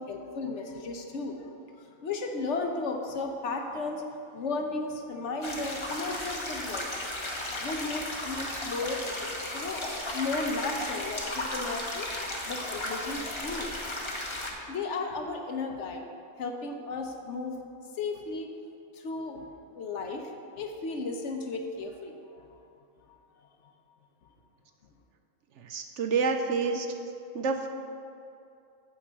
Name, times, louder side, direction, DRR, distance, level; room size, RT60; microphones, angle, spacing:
voice 1, 0.0-4.0 4.3-7.0 7.6-12.1 12.5-13.8 14.7-16.1 16.4-17.6 18.0-18.5 18.9-22.5, left 3 dB, 60° left, 4 dB, 1.0 m, -35 dB
sound 1, 5.4-14.5, left 1 dB, 25° left, 0.8 m, -35 dB
voice 2, 25.6-26.9 27.3-27.7, right 4 dB, 65° right, 5 dB, 0.8 m, -28 dB
8.8 x 4.6 x 7.3 m, 2.6 s
omnidirectional pair, 1.4 m